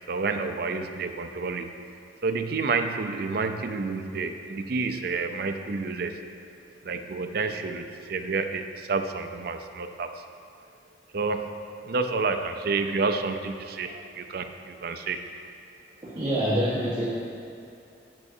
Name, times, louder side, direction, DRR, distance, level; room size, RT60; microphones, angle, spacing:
voice 1, 0.1-1.7 2.2-6.2 6.8-10.2 11.1-11.5 11.8-15.3, right 4 dB, 55° right, 7 dB, 0.5 m, -29 dB
voice 2, 16.0-17.0, equal, 25° right, -10 dB, 1.4 m, -26 dB
10.5 x 8.3 x 2.7 m, 2.6 s
head